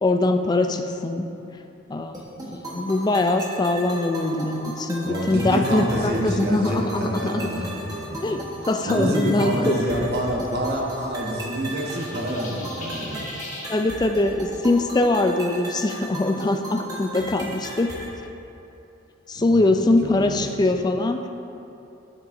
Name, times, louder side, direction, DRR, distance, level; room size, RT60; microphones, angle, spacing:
voice 1, 0.0-1.3 1.9-2.2 2.4-7.5 8.2-9.8 13.7-17.9 19.3-21.3, left 2 dB, 20° left, 6 dB, 0.3 m, -22 dB
sound 1, 2.1-18.1, right 1 dB, 20° right, 1.2 m, -36 dB
voice 2, 5.0-8.4 8.8-13.2 19.4-19.7 20.2-20.4, equal, 55° right, -1 dB, 1.1 m, -27 dB
sound 2, 11.8-13.7, left 2 dB, 40° left, 1.4 m, -38 dB
10.0 x 7.4 x 2.6 m, 2.8 s
head